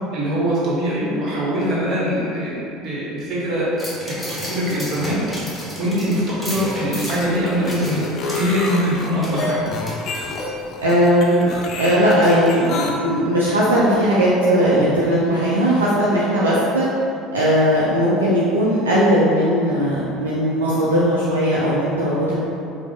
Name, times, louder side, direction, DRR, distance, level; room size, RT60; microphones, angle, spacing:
voice 1, 0.1-3.7 4.0-5.2 5.8-8.0 8.3-9.7, equal, 45° right, -6 dB, 1.1 m, -22 dB
sound 1, 3.8-10.7 11.0-11.1, equal, 5° left, 1.0 m, -33 dB
sound 2, 6.8-12.9, left 3 dB, 40° left, 0.5 m, -28 dB
voice 2, 10.8-11.5 11.8-16.9 17.3-22.3, equal, 75° right, -8 dB, 0.5 m, -18 dB
4.8 x 2.0 x 3.5 m, 2.7 s
figure-of-eight pair, 65°, 0 cm